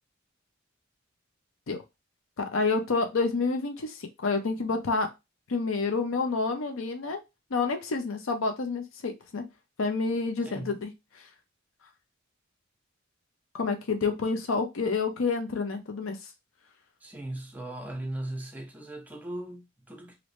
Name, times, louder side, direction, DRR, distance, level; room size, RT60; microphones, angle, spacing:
voice 1, 2.4-5.1 5.5-7.2 7.5-9.5 9.8-10.9 11.2-11.3 13.5-16.2, left 4 dB, 80° left, 0.6 m, -28 dB
voice 2, 10.4-10.8 17.0-20.2, right 1 dB, 10° right, 0.6 m, -38 dB
3.1 x 2.7 x 3.1 m
head